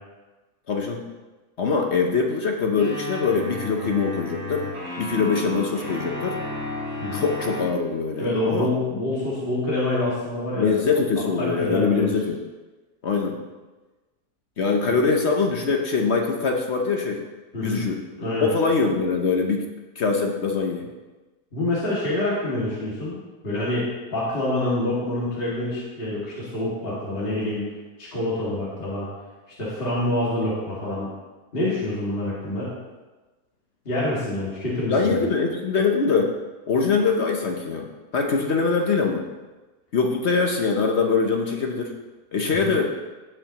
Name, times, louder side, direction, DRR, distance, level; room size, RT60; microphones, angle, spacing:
voice 1, 0.7-1.0 1.6-4.7 5.0-6.4 7.1-8.7 10.6-12.4 13.0-13.4 14.6-17.2 17.6-18.0 18.4-19.7 20.0-20.9 34.9-36.3 36.7-39.3 39.9-41.9 42.3-42.9, left 4 dB, 50° left, 2 dB, 0.9 m, -23 dB
sound 1, 2.8-7.7, left 2 dB, 85° right, 3.3 m, -33 dB
voice 2, 8.2-10.7 11.4-12.1 17.5-17.8 18.2-18.5 21.5-23.2 23.4-27.7 28.0-29.1 29.6-31.1 31.5-32.7 33.9-35.3 42.6-42.7, left 1 dB, 35° left, -8 dB, 2.3 m, -26 dB
17.0 x 5.6 x 2.9 m, 1.2 s
omnidirectional pair, 1.7 m